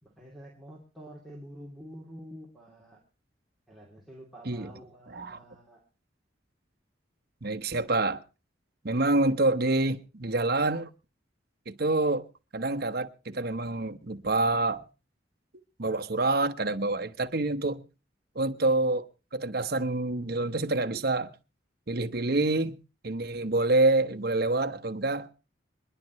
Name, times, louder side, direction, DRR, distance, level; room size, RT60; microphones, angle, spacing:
voice 1, 0.0-3.0 3.7-5.8, equal, ahead, 2.9 m, -48 dB
voice 2, 5.1-5.4 7.4-8.2 8.8-10.9 11.7-12.3 12.5-14.8 15.8-17.8 18.3-19.0 19.3-21.3 21.9-25.3, right 2 dB, 55° right, 1.1 m, -27 dB
26.0 x 11.0 x 3.1 m
head